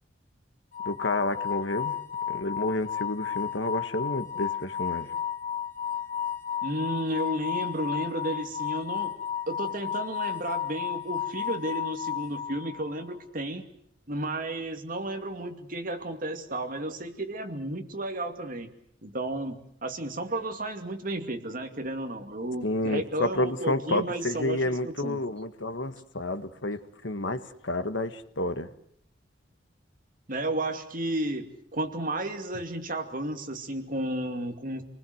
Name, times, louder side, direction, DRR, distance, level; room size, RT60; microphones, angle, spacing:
sound 1, 0.7-13.0, left 9 dB, 45° left, 1.5 m, -33 dB
voice 1, 0.8-1.9 2.3-5.1 22.6-28.7, left 2 dB, 70° left, 10 dB, 1.5 m, -30 dB
voice 2, 6.6-9.1 9.5-13.6 14.1-18.7 19.0-25.2 30.3-34.8, right 1 dB, 45° right, 5 dB, 2.5 m, -33 dB
28.0 x 20.0 x 7.9 m, 0.69 s
head